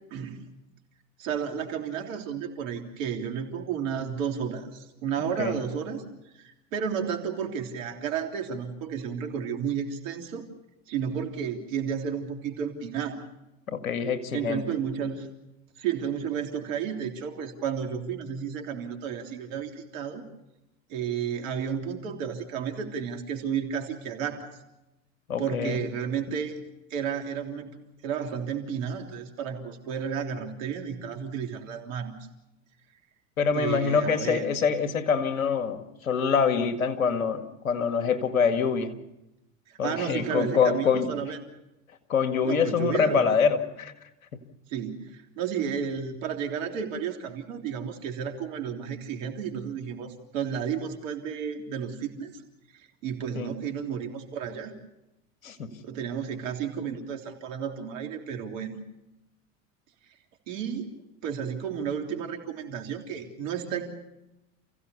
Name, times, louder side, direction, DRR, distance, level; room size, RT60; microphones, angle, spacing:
voice 1, 1.2-6.0 6.4-10.5 10.9-13.2 14.3-15.3 15.8-20.2 20.9-24.5 25.4-26.6 26.9-27.7 28.0-32.1 33.5-34.5 39.7-41.4 42.4-43.3 44.7-52.3 52.7-54.7 55.8-58.8 60.5-60.9 61.2-63.9, right 7 dB, 70° right, 4 dB, 3.5 m, -32 dB
voice 2, 5.2-5.5 13.7-14.7 25.3-25.8 33.4-38.9 39.8-41.1 42.1-43.9 53.4-53.5 55.4-55.7, left 6 dB, 90° left, 8 dB, 2.0 m, -25 dB
29.0 x 16.0 x 7.0 m, 0.94 s
hypercardioid pair, 80°, 40 cm